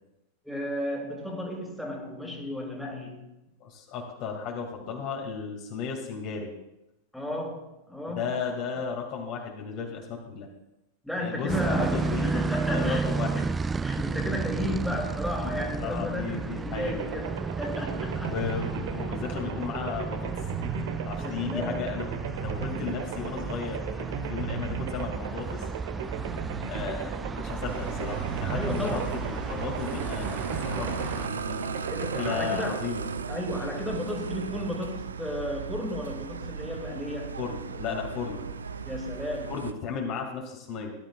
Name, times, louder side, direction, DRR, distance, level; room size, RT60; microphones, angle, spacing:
voice 1, 0.4-3.3 7.1-8.3 11.0-13.0 13.3-13.4 13.8-18.3 21.2-21.8 28.5-29.1 31.9-32.8 33.3-37.4 38.8-39.5, left 1 dB, ahead, -1 dB, 2.5 m, -33 dB
voice 2, 3.6-6.5 8.1-10.5 11.2-13.4 13.9-14.1 15.6-17.0 18.2-20.3 21.0-22.1 22.4-25.7 26.6-33.1 37.4-38.4 39.5-40.9, left 6 dB, 40° left, 1 dB, 2.4 m, -34 dB
sound 1, 11.5-31.3, right 5 dB, 15° right, 0.3 m, -33 dB
sound 2, 16.7-33.7, right 6 dB, 55° right, 1.2 m, -37 dB
sound 3, 27.7-39.7, right 5 dB, 70° right, 0.6 m, -36 dB
18.0 x 11.5 x 2.4 m, 0.91 s
figure-of-eight pair, 90°, 0 cm